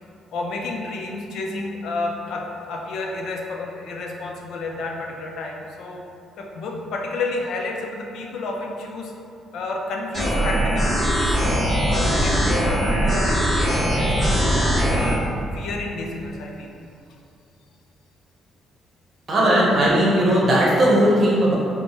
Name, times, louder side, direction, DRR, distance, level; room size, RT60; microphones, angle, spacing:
voice 1, 0.3-6.1 6.4-9.1 9.5-11.5 11.9-14.2 14.8-15.3 15.5-16.7, left 3 dB, 75° left, 1 dB, 0.4 m, -31 dB
sound 1, 10.1-15.1, equal, 10° right, 1.4 m, -20 dB
voice 2, 19.3-21.6, right 1 dB, 40° right, -5 dB, 0.9 m, -17 dB
4.5 x 2.1 x 2.9 m, 2.5 s
cardioid pair, 125°, 0 cm